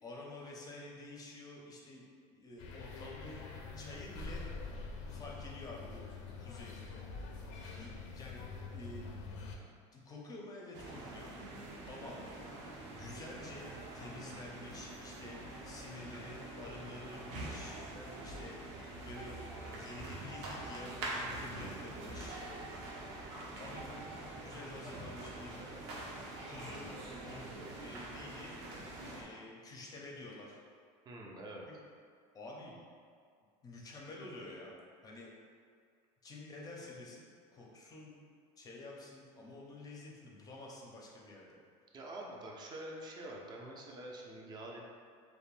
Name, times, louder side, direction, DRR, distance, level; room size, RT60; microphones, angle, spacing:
voice 1, 0.0-2.0 2.3-3.5 3.7-4.5 5.0-6.1 6.4-9.1 9.9-11.3 11.9-12.6 12.9-13.7 13.9-17.8 18.2-19.4 19.7-22.4 23.5-23.9 24.4-26.1 26.4-26.9 27.3-27.4 27.7-28.5 29.1-30.6 31.7-31.8 32.3-32.8 33.6-34.7 35.0-35.3 36.2-38.2 38.6-41.6, left 2 dB, 25° left, -3 dB, 0.5 m, -49 dB
sound 1, 2.6-9.6, left 4 dB, 90° left, 0.4 m, -45 dB
sound 2, 10.7-29.2, right 2 dB, 75° right, 0.6 m, -45 dB
voice 2, 31.1-31.6 41.9-44.8, right 1 dB, 30° right, -1 dB, 0.4 m, -46 dB
2.5 x 2.1 x 3.1 m, 2.1 s
supercardioid pair, 125°, 15 cm